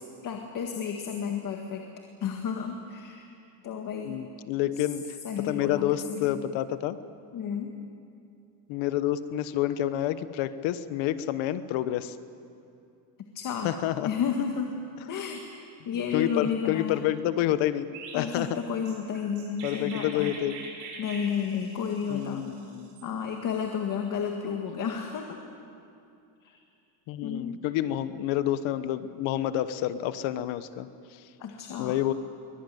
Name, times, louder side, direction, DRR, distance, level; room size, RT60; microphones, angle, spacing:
voice 1, 0.2-1.8 2.2-3.3 3.6-4.2 5.2-6.4 7.3-7.8 13.4-13.7 14.0-14.8 15.1-15.4 15.9-17.1 18.1-20.4 21.0-22.5 23.0-25.4 26.4-26.6 27.2-27.6 31.4-32.0, left 7 dB, 45° left, 3 dB, 1.8 m, -32 dB
voice 2, 4.0-5.0 5.4-7.0 8.7-12.2 13.6-14.1 16.1-17.9 18.1-18.5 19.6-20.5 22.1-22.9 27.1-31.2 31.8-32.1, left 12 dB, 80° left, 13 dB, 1.2 m, -28 dB
Chirp tweet, 17.9-23.1, right 4 dB, 90° right, 6.7 m, -44 dB
23.0 x 21.0 x 9.2 m, 2.6 s
cardioid pair, 160°, 45 cm